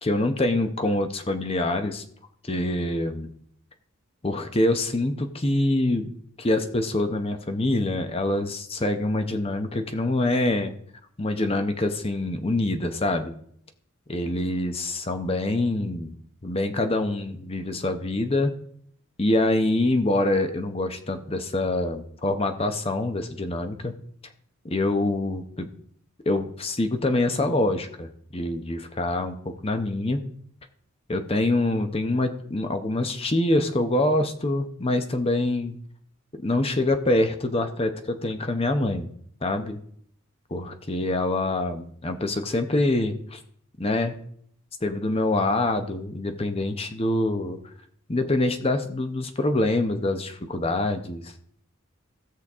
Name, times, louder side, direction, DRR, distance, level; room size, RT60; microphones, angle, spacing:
voice 1, 0.0-2.0 2.4-3.3 4.2-6.1 6.4-10.7 11.2-13.3 14.1-16.1 16.4-18.6 19.2-23.9 24.6-25.7 26.3-30.3 31.1-35.8 36.3-39.1 39.4-39.8 40.5-43.4 43.8-44.1 44.8-47.6 48.1-51.3, left 2 dB, 30° left, 7 dB, 0.8 m, -25 dB
16.0 x 6.5 x 3.6 m, 0.64 s
head